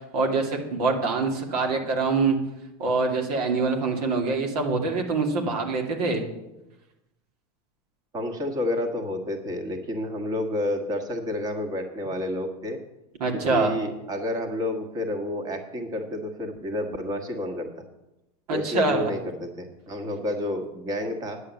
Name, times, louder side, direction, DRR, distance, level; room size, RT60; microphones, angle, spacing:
voice 1, 0.1-2.4 2.8-6.3 13.2-13.7 18.5-19.1, right 3 dB, 85° right, 2 dB, 2.5 m, -25 dB
voice 2, 8.1-12.8 13.3-17.7 18.5-21.4, left 1 dB, 20° right, 5 dB, 1.4 m, -30 dB
9.8 x 7.5 x 8.1 m, 0.94 s
supercardioid pair, 160°, 19 cm